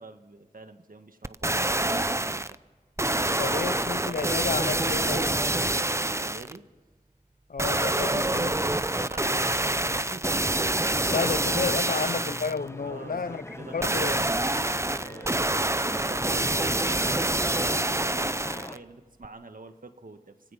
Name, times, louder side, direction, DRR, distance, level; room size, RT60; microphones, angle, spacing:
voice 1, 0.0-2.6 3.0-4.7 6.1-6.6 8.0-10.3 10.8-11.9 12.8-14.2 15.0-20.5, right 3 dB, 70° right, 1.6 m, -46 dB
sound 1, 1.2-2.6 3.0-6.6 7.6-12.6 13.8-18.8 19.2-19.3, right 2 dB, 20° right, 0.6 m, -26 dB
voice 2, 3.4-5.4 7.5-8.5 11.1-13.4 13.7-14.2, left 5 dB, 80° left, 0.6 m, -31 dB
sound 2, 11.1-18.8, left 1 dB, 20° left, 1.1 m, -42 dB
26.5 x 17.0 x 5.8 m
wide cardioid pair, 45°, 15 cm